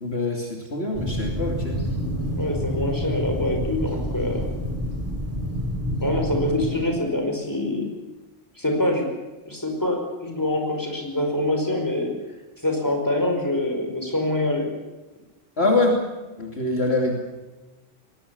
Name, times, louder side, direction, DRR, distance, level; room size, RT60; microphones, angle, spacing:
voice 1, 0.0-1.8 15.6-16.0 16.4-17.1, left 2 dB, 55° left, 1 dB, 3.0 m, -24 dB
sound 1, 0.9-6.8, equal, 10° right, 8.0 m, -28 dB
voice 2, 2.4-4.5 6.0-7.9 8.6-9.1 9.5-12.1 12.6-14.7, left 1 dB, 15° left, 2 dB, 5.1 m, -25 dB
22.5 x 19.0 x 7.0 m, 1.1 s
omnidirectional pair, 1.3 m